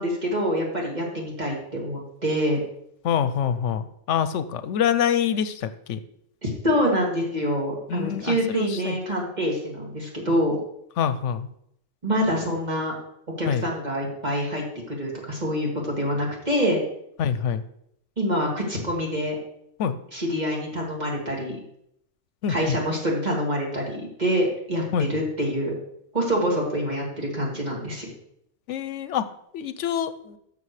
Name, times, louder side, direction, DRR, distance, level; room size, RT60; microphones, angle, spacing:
voice 1, 0.0-2.6 6.4-10.6 12.0-12.9 13.4-16.8 18.2-19.4 20.1-21.6 22.5-24.8 25.1-25.7 26.1-28.1, equal, 35° right, -2 dB, 2.5 m, -26 dB
voice 2, 3.0-6.0 7.9-9.0 11.0-11.5 13.5-13.7 17.2-17.6 19.8-19.9 22.4-22.5 24.9-25.1 28.7-29.3 29.5-30.4, left 8 dB, 85° left, 13 dB, 0.9 m, -25 dB
12.0 x 6.8 x 3.2 m, 0.73 s
omnidirectional pair, 1.2 m